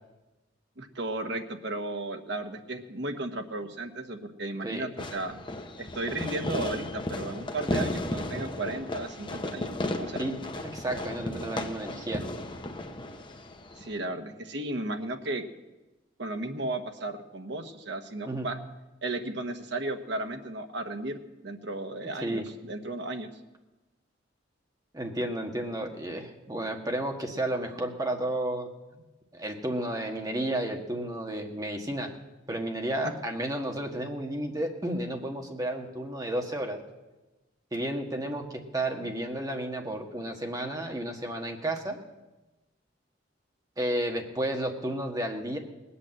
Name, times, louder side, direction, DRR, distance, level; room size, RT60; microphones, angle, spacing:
voice 1, 0.8-5.4 5.8-10.2 13.8-15.4 16.2-18.6 19.0-21.2 21.4-23.3, right 2 dB, 65° right, 6 dB, 1.2 m, -34 dB
Fireworks, 5.0-14.0, left 1 dB, 25° left, 1.0 m, -35 dB
voice 2, 10.2-12.2 18.2-18.5 22.2-22.5 24.9-28.7 29.3-32.1 32.5-36.8 37.7-42.0 43.8-45.6, right 1 dB, 20° right, 3 dB, 1.5 m, -32 dB
19.0 x 8.4 x 7.7 m, 1.1 s
head